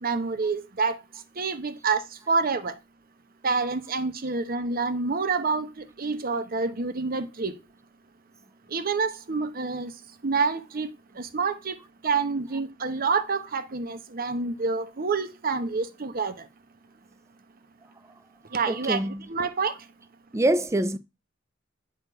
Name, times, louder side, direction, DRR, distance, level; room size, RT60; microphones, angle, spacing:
voice 1, 0.0-1.0 1.4-2.7 3.4-7.5 8.7-9.9 10.2-11.8 12.0-16.3 18.5-19.7, right 4 dB, 50° right, 0.8 m, -27 dB
voice 2, 18.7-19.2 20.3-21.0, right 1 dB, 15° right, 0.4 m, -25 dB
9.2 x 3.6 x 4.5 m
head